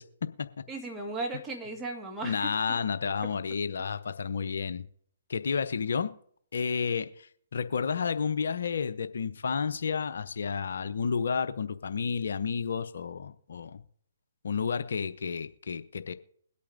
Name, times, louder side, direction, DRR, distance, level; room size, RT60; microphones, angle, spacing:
voice 1, 0.0-0.6 2.2-4.9 5.3-6.1 6.5-13.8 14.4-16.1, left 6 dB, 70° left, 0.7 m, -31 dB
voice 2, 0.7-2.8, right 2 dB, 15° right, 1.5 m, -36 dB
21.5 x 8.4 x 2.6 m
figure-of-eight pair, 135°, 0 cm